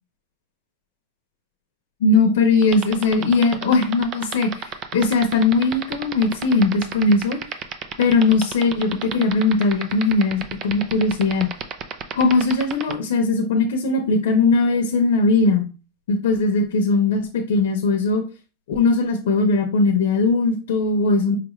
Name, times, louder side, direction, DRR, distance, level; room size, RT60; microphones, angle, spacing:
voice 1, 2.0-7.4 8.0-11.5 12.2-15.7 16.1-18.2 18.7-21.4, left 3 dB, 75° left, 3 dB, 0.7 m, -19 dB
sound 1, 2.6-12.9, right 9 dB, 30° right, 0.4 m, -29 dB
4.7 x 2.4 x 3.0 m, 0.32 s
supercardioid pair, 155°, 0 cm